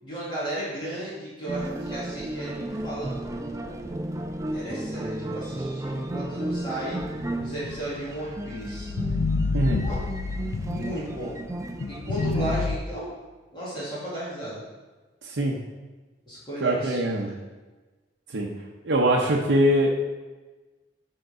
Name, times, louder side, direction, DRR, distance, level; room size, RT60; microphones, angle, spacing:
voice 1, 0.0-3.3 3.5-3.9 4.5-7.0 7.4-8.9 9.8-10.0 10.7-11.4 11.9-13.1 13.5-14.6 16.3-17.3, right 1 dB, 25° left, -9 dB, 2.2 m, -35 dB
sound 1, 1.5-12.6, right 1 dB, 15° right, 0.4 m, -34 dB
sound 2, 7.0-11.3 11.8-12.8, left 3 dB, 75° left, 0.4 m, -29 dB
voice 2, 9.5-9.8 15.2-15.6 16.6-17.3 18.3-18.5 18.8-19.9, right 1 dB, 90° right, -1 dB, 0.7 m, -22 dB
7.8 x 3.8 x 5.0 m, 1.2 s
head